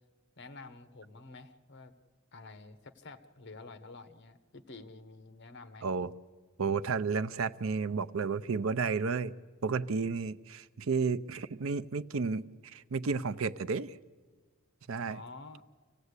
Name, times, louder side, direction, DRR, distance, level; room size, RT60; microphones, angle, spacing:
voice 1, 0.4-1.9 2.3-5.9 15.0-15.6, left 3 dB, 55° left, 11 dB, 1.2 m, -49 dB
voice 2, 6.6-9.3 9.6-12.4 12.7-13.9 14.9-15.2, right 4 dB, 70° right, 13 dB, 0.6 m, -32 dB
26.0 x 16.5 x 8.2 m, 1.5 s
head